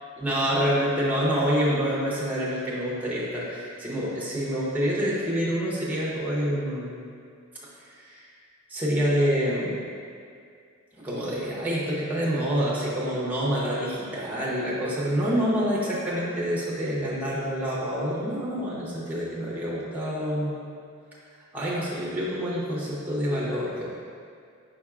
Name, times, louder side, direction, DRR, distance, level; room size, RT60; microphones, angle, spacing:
voice 1, 0.2-6.9 7.8-8.3 8.7-9.8 10.9-20.6 21.5-23.9, equal, 10° right, -7 dB, 0.7 m, -27 dB
5.1 x 4.4 x 2.4 m, 2.3 s
head